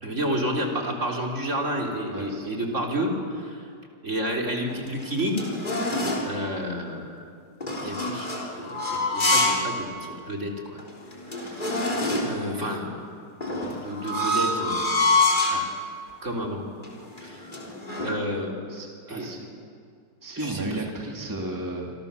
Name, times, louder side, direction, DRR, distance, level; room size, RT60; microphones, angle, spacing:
voice 1, 0.0-3.7 4.0-5.3 6.3-7.3 7.8-10.8 11.3-11.9 12.2-12.9 13.8-15.1 15.4-15.7 16.2-16.6 17.2-17.5 18.0-18.5 19.1-19.3 20.4-20.7, equal, 45° right, 0 dB, 3.7 m, -30 dB
voice 2, 2.1-2.5 18.7-19.5 20.2-21.9, right 2 dB, 10° right, -1 dB, 2.6 m, -33 dB
sound 1, 4.7-6.3 7.6-9.7 10.1-10.2 10.8-10.9 11.1-12.4 13.4-15.6 16.3-16.6 16.8-18.1, left 2 dB, 25° left, 3.9 m, -26 dB
28.0 x 25.5 x 7.0 m, 2.3 s
omnidirectional pair, 1.9 m